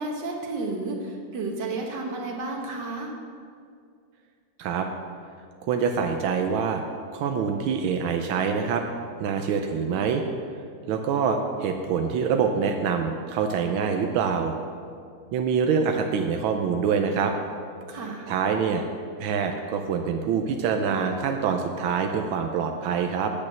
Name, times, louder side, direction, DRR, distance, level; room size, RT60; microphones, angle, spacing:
voice 1, 0.0-3.1 17.9-18.3, right 2 dB, 60° right, 0 dB, 2.0 m, -32 dB
voice 2, 5.6-6.8 7.1-8.8 9.2-10.2 10.9-14.5 15.3-17.3 18.3-18.8 19.2-23.3, right 6 dB, 90° right, 4 dB, 1.5 m, -25 dB
8.6 x 8.5 x 6.3 m, 2.2 s
omnidirectional pair, 2.2 m